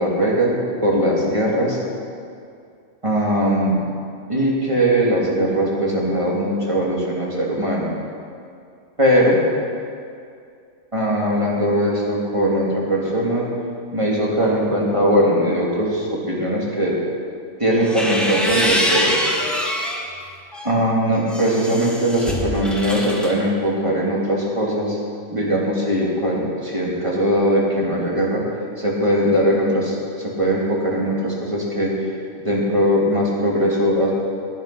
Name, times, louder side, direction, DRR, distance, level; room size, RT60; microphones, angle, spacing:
voice 1, 0.0-1.8 3.0-3.8 4.3-7.9 9.0-9.4 10.9-13.5 13.9-17.0 17.6-19.1 20.6-25.0 25.3-28.4 28.8-31.9 32.4-34.1, equal, 25° right, -4 dB, 3.1 m, -20 dB
sound 1, 17.7-20.0 20.5-23.3, equal, ahead, 1.9 m, -24 dB
20.0 x 9.7 x 6.0 m, 2.3 s
omnidirectional pair, 1.3 m